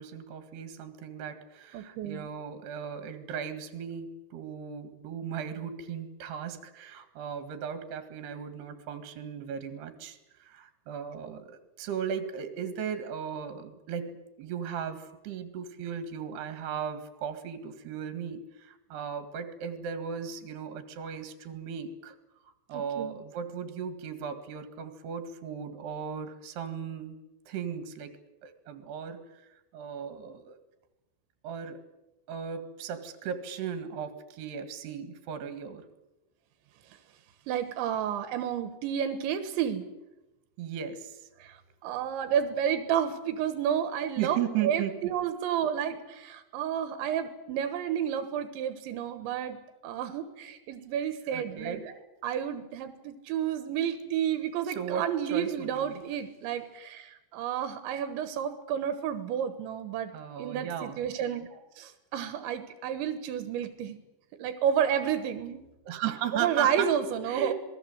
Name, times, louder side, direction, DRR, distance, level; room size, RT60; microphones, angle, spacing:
voice 1, 0.0-22.2 22.4-27.2 27.5-28.2 28.4-30.6 31.4-31.8 32.3-35.9 40.6-41.3 44.2-44.9 51.3-51.8 54.7-56.0 60.1-61.0 65.9-66.9 67.3-67.5, right 8 dB, 70° right, 10 dB, 3.9 m, -37 dB
voice 2, 1.7-2.3 22.7-23.1 37.5-39.9 41.4-49.6 49.8-51.9 52.2-60.1 60.4-64.0 64.4-65.6 66.3-67.5, right 9 dB, 85° right, 10 dB, 3.7 m, -31 dB
27.0 x 20.0 x 8.0 m, 0.98 s
omnidirectional pair, 5.1 m